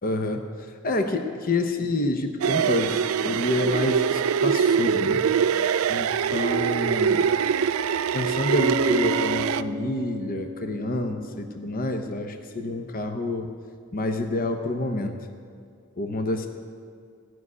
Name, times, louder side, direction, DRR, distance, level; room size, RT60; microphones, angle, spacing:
voice 1, 0.0-5.3 5.9-7.2 8.1-13.5 13.9-15.2 16.0-16.5, left 2 dB, 45° left, 5 dB, 0.9 m, -28 dB
sound 1, 2.4-9.6, right 7 dB, 80° right, 0.4 m, -23 dB
Bass guitar, 8.6-12.2, equal, 25° right, 0.6 m, -34 dB
16.0 x 6.3 x 9.6 m, 2.2 s
head